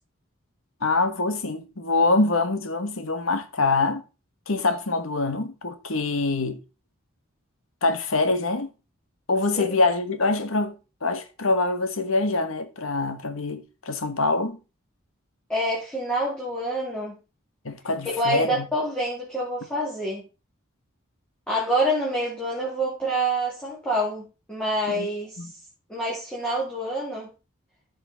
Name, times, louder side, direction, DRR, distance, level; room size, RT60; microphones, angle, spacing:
voice 1, 0.8-4.0 4.5-6.6 7.8-8.7 9.3-14.6 17.6-18.7 24.9-25.1 25.4-25.5, left 3 dB, 70° left, 1.4 m, -25 dB
voice 2, 15.5-17.1 18.0-20.2 21.5-25.4 25.9-27.3, right 1 dB, 5° left, 2.7 m, -27 dB
14.0 x 5.5 x 4.0 m
head